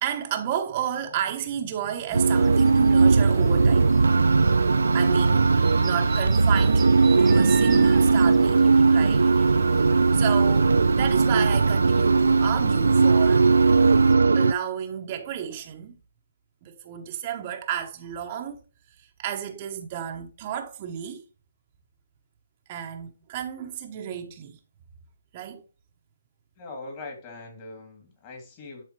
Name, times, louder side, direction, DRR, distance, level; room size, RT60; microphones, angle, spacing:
voice 1, 0.0-3.9 4.9-9.3 10.1-13.5 14.3-15.9 16.6-18.6 19.0-21.2 22.7-24.6 25.3-25.6, right 9 dB, 35° right, 1.0 m, -32 dB
sound 1, 2.1-14.1, right 5 dB, 10° right, 0.7 m, -40 dB
sound 2, 2.1-14.5, right 4 dB, 85° right, 0.4 m, -19 dB
voice 2, 26.6-28.8, left 3 dB, 30° left, 2.8 m, -41 dB
11.0 x 4.1 x 3.1 m
hypercardioid pair, 150°, 0 cm